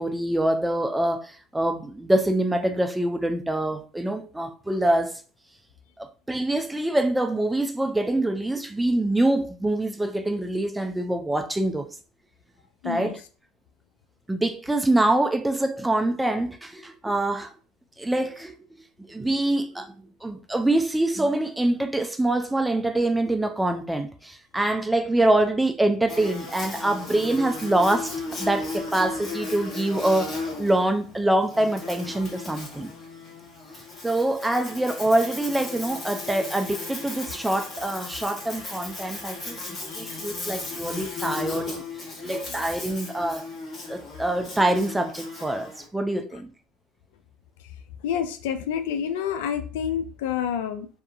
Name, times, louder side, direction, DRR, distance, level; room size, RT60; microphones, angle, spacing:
voice 1, 0.0-5.2 6.0-11.9 12.8-13.2 14.3-17.5 18.0-18.5 19.1-19.9 20.2-28.1 28.4-32.9 34.0-41.8 42.2-43.5 43.9-46.5, right 1 dB, 10° right, 0.4 m, -25 dB
voice 2, 12.8-13.1 39.9-40.2 42.2-42.6 46.3-46.4 48.0-50.9, left 8 dB, 80° left, 0.3 m, -29 dB
Buzz, 26.1-45.9, left 3 dB, 40° left, 1.3 m, -36 dB
2.7 x 2.4 x 2.3 m
hypercardioid pair, 75°, 0 cm